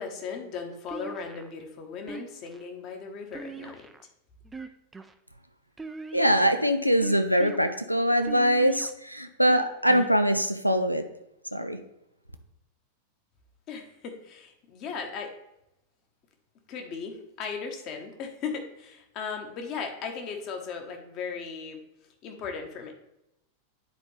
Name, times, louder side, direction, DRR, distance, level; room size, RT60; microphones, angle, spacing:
voice 1, 0.0-3.9 13.7-15.3 16.7-21.8 22.2-22.9, left 5 dB, 40° left, 3 dB, 1.2 m, -37 dB
sound 1, 0.9-1.5 2.1-2.6 3.3-4.0 4.5-5.1 5.8-6.5 7.0-7.6 8.2-8.9 9.5-10.1, right 2 dB, 10° right, 0.5 m, -40 dB
voice 2, 6.1-11.0 11.5-11.8, equal, 90° left, 8 dB, 0.5 m, -23 dB
9.6 x 4.3 x 3.3 m, 0.87 s
figure-of-eight pair, 90°, 0 cm